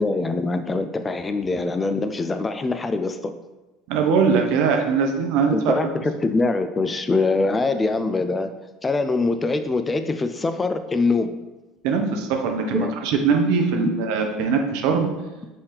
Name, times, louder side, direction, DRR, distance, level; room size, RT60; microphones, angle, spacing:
voice 1, 0.0-3.3 5.5-8.5 8.8-11.3 12.7-12.9, left 3 dB, 20° left, 9 dB, 0.3 m, -23 dB
voice 2, 3.9-5.8 11.8-15.1, right 5 dB, 65° right, 3 dB, 0.6 m, -21 dB
5.5 x 2.8 x 3.2 m, 1.1 s
hypercardioid pair, 75°, 0 cm